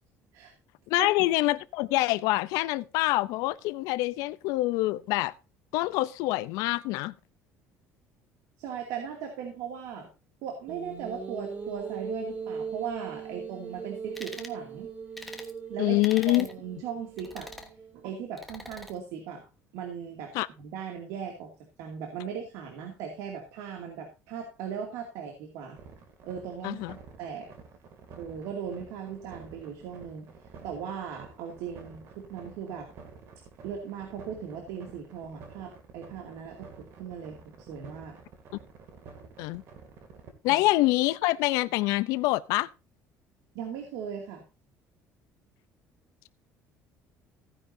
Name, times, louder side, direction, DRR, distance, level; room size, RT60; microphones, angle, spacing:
voice 1, 0.9-5.3 5.7-7.1 15.8-16.5 20.3-20.5 26.6-26.9 39.4-39.6 40.4-42.7, left 18 dB, 80° left, 0.6 m, -26 dB
voice 2, 8.6-10.1 10.4-14.9 15.7-16.0 16.3-17.5 17.9-19.5 19.7-21.5 21.8-25.8 26.2-27.5 28.2-32.9 33.6-38.2 40.5-40.6 43.5-44.4, right 7 dB, 80° right, 2.5 m, -38 dB
sound 1, 10.7-18.1, right 6 dB, 25° right, 2.3 m, -40 dB
sound 2, 14.1-14.6 15.2-15.5 16.0-16.5 17.2-17.7 18.4-18.9, left 1 dB, 5° left, 1.2 m, -43 dB
sound 3, 25.8-40.3, right 6 dB, 50° right, 2.5 m, -50 dB
15.5 x 10.0 x 2.7 m
cardioid pair, 175°, 6 cm